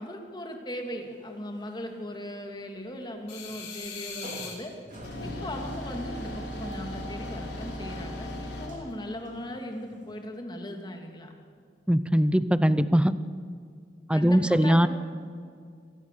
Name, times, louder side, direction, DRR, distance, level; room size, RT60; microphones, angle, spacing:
voice 1, 0.0-4.7 5.2-11.3 14.1-14.9, left 1 dB, 25° left, 3 dB, 2.6 m, -38 dB
sound 1, 1.0-1.2 1.5-1.6 2.0-2.1 3.5-3.9 4.2-10.3, left 1 dB, 45° right, 3.2 m, -45 dB
sound 2, 3.3-4.6 4.9-8.7, left 1 dB, 75° left, 4.1 m, -38 dB
voice 2, 11.9-13.1 14.1-14.9, equal, 5° right, 13 dB, 0.6 m, -21 dB
26.0 x 19.5 x 6.8 m, 2.2 s
head